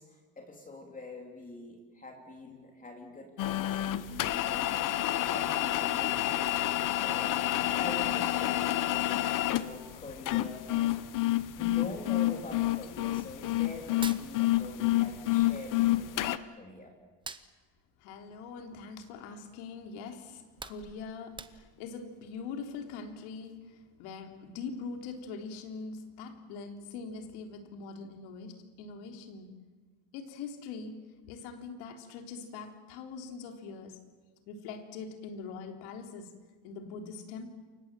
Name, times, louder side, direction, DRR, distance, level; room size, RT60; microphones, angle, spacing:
voice 1, 0.0-11.0 11.6-16.9, left 2 dB, 15° left, 1 dB, 3.1 m, -45 dB
sound 1, 3.4-16.4, left 15 dB, 40° left, 0.9 m, -29 dB
Hands, 13.9-15.1 15.4-16.7 17.0-19.4 19.8-20.0 20.3-21.9, right 4 dB, 10° right, 0.8 m, -46 dB
voice 2, 18.0-29.5 30.1-31.0 31.3-34.0 34.5-36.3 36.6-37.5, left 4 dB, 80° left, 4 dB, 3.8 m, -43 dB
29.0 x 24.5 x 7.7 m, 1.4 s
cardioid pair, 150°, 48 cm